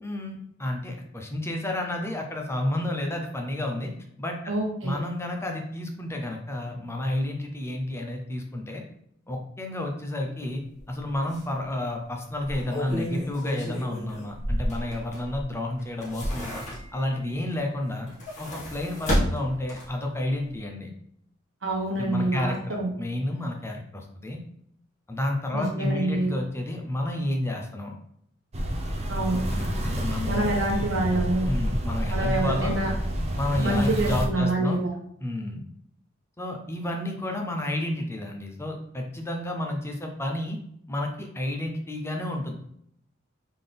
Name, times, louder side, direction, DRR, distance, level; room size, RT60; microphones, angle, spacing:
voice 1, 0.0-3.9 4.2-4.5 4.8-8.8 9.3-10.6 10.9-16.6 16.9-18.1 18.4-20.9 21.9-24.4 25.1-27.9 29.5-30.5 31.5-32.8 33.4-34.8 35.2-35.6 36.4-40.6 40.9-42.5, left 1 dB, 15° left, 2 dB, 0.6 m, -31 dB
voice 2, 4.5-5.0 21.6-22.9 25.5-26.3 29.1-29.4 30.2-31.5 32.1-32.9 33.6-34.9, right 2 dB, 70° right, -1 dB, 1.3 m, -26 dB
sound 1, 10.8-10.9 11.3-11.4 12.4-15.4 15.8-17.1 18.0-20.1 20.5-20.6, equal, 40° left, 1.7 m, -30 dB
sound 2, 28.5-34.3, equal, 35° right, 0.6 m, -29 dB
4.0 x 3.8 x 3.4 m, 0.71 s
head